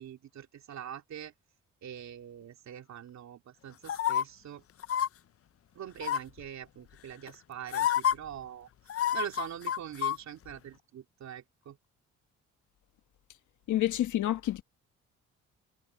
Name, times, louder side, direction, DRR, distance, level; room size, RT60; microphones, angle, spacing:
voice 1, 0.0-1.3 1.8-4.6 5.7-11.8, right 9 dB, 65° right, 3.0 m, -43 dB
sound 1, 3.9-4.2 4.8-5.1 6.0-6.4 7.3-7.4 7.7-8.1 8.9-10.2 10.5-10.6, left 10 dB, 50° left, 0.6 m, -28 dB
voice 2, 13.7-14.6, left 13 dB, 75° left, 1.3 m, -28 dB
cardioid pair, 90°, 30 cm